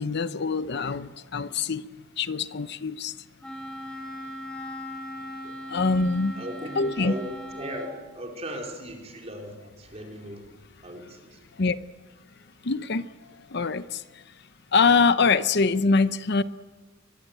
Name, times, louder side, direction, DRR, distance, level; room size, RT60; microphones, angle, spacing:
voice 1, 0.0-1.8 2.2-3.1 5.7-6.3 6.8-7.1 11.6-11.8 12.6-13.0 13.5-14.0 14.7-16.4, left 4 dB, 60° left, 13 dB, 0.8 m, -23 dB
Wind instrument woodwind instrument, 3.4-8.0, equal, 5° left, 4.6 m, -38 dB
voice 2, 6.3-7.3 7.6-10.4 10.8-11.4, equal, 35° right, 1 dB, 4.5 m, -37 dB
23.5 x 22.0 x 9.1 m, 1.4 s
head